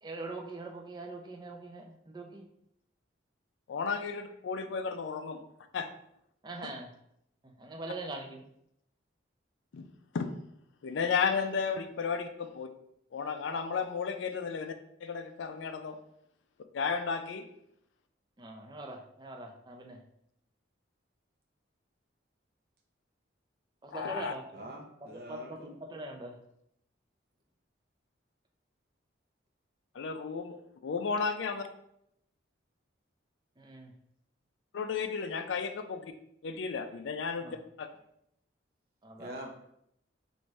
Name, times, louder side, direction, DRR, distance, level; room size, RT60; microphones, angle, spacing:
voice 1, 0.0-2.5 6.4-6.9 7.4-8.4 18.4-20.0 23.8-24.6 25.3-26.4 33.6-33.9 37.4-37.5 39.0-39.3, right 2 dB, 20° right, 2 dB, 0.4 m, -42 dB
voice 2, 3.7-5.4 5.7-5.9 9.7-9.8 10.1-10.3 10.8-12.7 13.1-14.7 15.0-16.0 16.7-17.5 23.9-24.3 30.0-30.6 30.8-31.7 34.7-36.1 36.4-37.4 37.8-37.9, left 5 dB, 70° left, 8 dB, 0.4 m, -33 dB
voice 3, 24.5-25.8 39.2-39.5, right 1 dB, 50° right, 1 dB, 0.7 m, -44 dB
4.6 x 2.6 x 3.1 m, 0.76 s
head